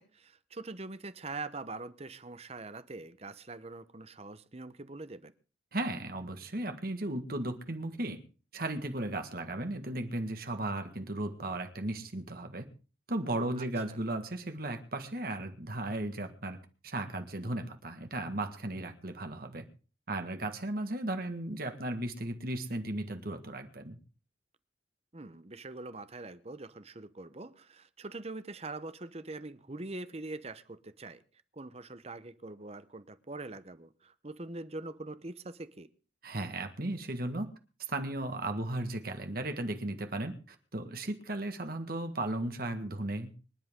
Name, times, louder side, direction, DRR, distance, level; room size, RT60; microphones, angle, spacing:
voice 1, 0.0-5.3 13.6-14.0 25.1-31.2 31.5-35.9, right 2 dB, 35° right, 14 dB, 0.9 m, -43 dB
voice 2, 5.7-8.2 8.5-12.7 13.1-19.7 20.1-24.0 36.2-37.5 37.9-43.4, right 1 dB, 50° right, 6 dB, 1.8 m, -36 dB
25.5 x 10.5 x 3.7 m, 0.36 s
head